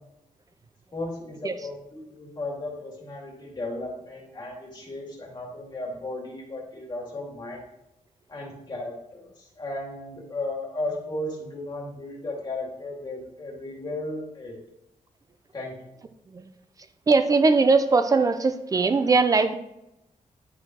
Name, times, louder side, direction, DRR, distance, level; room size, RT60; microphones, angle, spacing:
voice 1, 0.9-7.6 8.3-14.6 15.5-15.7, left 2 dB, 30° left, -2 dB, 2.1 m, -35 dB
voice 2, 17.1-19.6, right 4 dB, 25° right, 9 dB, 0.5 m, -20 dB
11.0 x 4.9 x 3.0 m, 0.87 s
wide cardioid pair, 175°, 14 cm